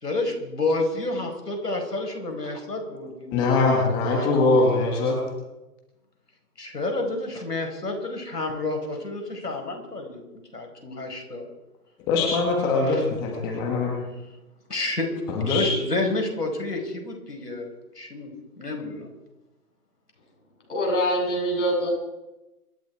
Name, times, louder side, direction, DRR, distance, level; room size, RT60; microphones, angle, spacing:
voice 1, 0.0-4.6 6.6-10.2 10.5-11.4 12.8-13.0 13.8-13.9 14.7-15.1 15.3-17.7 18.0-18.3 18.6-19.1, left 2 dB, 80° left, 3 dB, 5.6 m, -29 dB
voice 2, 3.3-5.2 12.1-13.9 15.3-15.7, left 3 dB, 10° left, 0 dB, 1.3 m, -22 dB
voice 3, 20.7-21.9, equal, 50° left, 0 dB, 7.6 m, -24 dB
25.5 x 11.0 x 4.8 m, 1.0 s
figure-of-eight pair, 155°, 47 cm